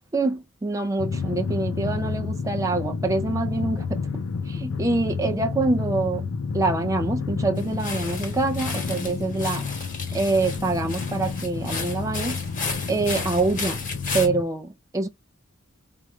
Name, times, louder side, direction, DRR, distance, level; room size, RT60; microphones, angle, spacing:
voice 1, 0.1-9.7 10.1-12.4 12.9-13.8 14.1-15.1, right 3 dB, 15° right, 0.4 m, -26 dB
Drum, 1.0-14.4, left 5 dB, 85° left, 0.5 m, -30 dB
sound 1, 7.6-14.3, left 4 dB, 40° left, 1.2 m, -34 dB
4.6 x 2.4 x 3.1 m
head